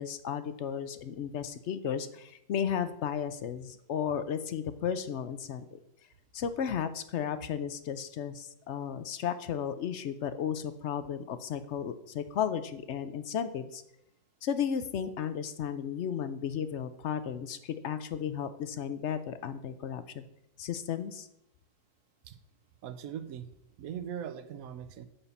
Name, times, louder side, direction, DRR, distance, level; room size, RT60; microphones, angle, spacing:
voice 1, 0.0-5.7 6.3-13.8 14.4-20.3 20.6-21.3, left 8 dB, 60° left, 11 dB, 0.7 m, -34 dB
voice 2, 22.8-23.5 23.8-25.1, right 9 dB, 70° right, 10 dB, 1.1 m, -40 dB
7.2 x 5.6 x 6.8 m, 0.78 s
omnidirectional pair, 1.7 m